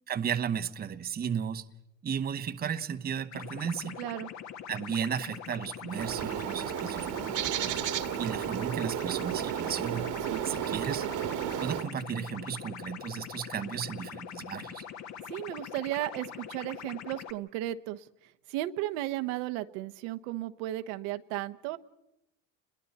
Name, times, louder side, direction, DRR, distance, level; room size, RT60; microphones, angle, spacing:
voice 1, 0.1-1.7 2.0-4.0 4.7-7.8 8.2-10.1 10.4-11.1 11.6-14.9, right 8 dB, 25° right, 0.9 m, -34 dB
sound 1, 3.3-17.3, left 8 dB, 45° left, 1.4 m, -43 dB
voice 2, 4.0-4.3 10.2-10.4 15.3-18.1 18.5-21.8, right 15 dB, 70° right, 1.2 m, -34 dB
Bird, 5.9-11.9, right 11 dB, 50° right, 1.5 m, -33 dB
30.0 x 21.5 x 4.2 m
supercardioid pair, 100°, 39 cm